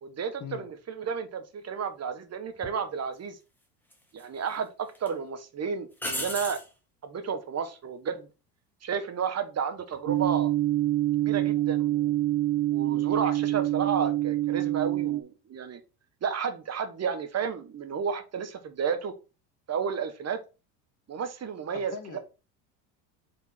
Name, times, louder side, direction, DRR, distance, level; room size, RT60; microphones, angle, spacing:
voice 1, 0.0-3.4 4.1-6.6 7.0-8.3 8.8-10.5 11.2-12.1 12.7-15.8 16.2-19.1 19.7-20.4 21.1-22.2, right 6 dB, 30° right, 1.2 m, -32 dB
sound 1, 2.6-2.8 3.9-4.6 4.9-5.1 6.0-6.7 9.8-10.2, left 1 dB, 5° left, 1.6 m, -35 dB
sound 2, 10.1-15.2, right 15 dB, 55° right, 1.0 m, -26 dB
voice 2, 21.7-22.2, left 6 dB, 40° left, 1.9 m, -40 dB
4.9 x 3.7 x 5.5 m
hypercardioid pair, 85°, 48 cm